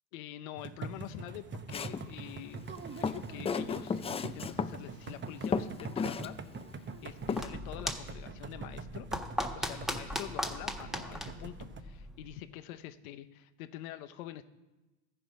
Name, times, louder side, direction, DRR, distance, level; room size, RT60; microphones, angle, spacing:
voice 1, 0.1-2.6 3.0-6.4 6.7-9.3 9.5-14.4, left 13 dB, 75° left, 10 dB, 0.7 m, -45 dB
sound 1, 0.6-11.8, right 4 dB, 25° right, 1.0 m, -44 dB
Walk footsteps, 1.7-2.1 2.8-4.7 5.1-5.2 5.4-6.3 6.6-6.7 7.3-7.4, left 5 dB, 15° left, 0.4 m, -33 dB
sound 2, 7.0-12.4, left 1 dB, ahead, 1.4 m, -39 dB
14.5 x 5.6 x 5.1 m, 1.1 s
hypercardioid pair, 85°, 43 cm